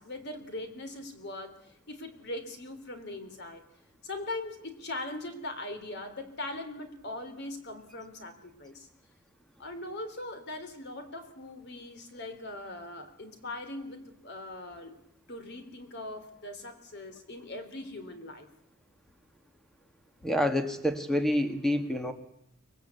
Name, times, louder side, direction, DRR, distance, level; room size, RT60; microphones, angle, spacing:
voice 1, 0.0-3.7 4.0-8.9 9.6-15.0 15.3-18.5, left 2 dB, 55° left, 8 dB, 3.2 m, -40 dB
voice 2, 20.2-22.1, left 1 dB, ahead, 6 dB, 2.0 m, -27 dB
24.5 x 20.0 x 8.3 m, 0.79 s
head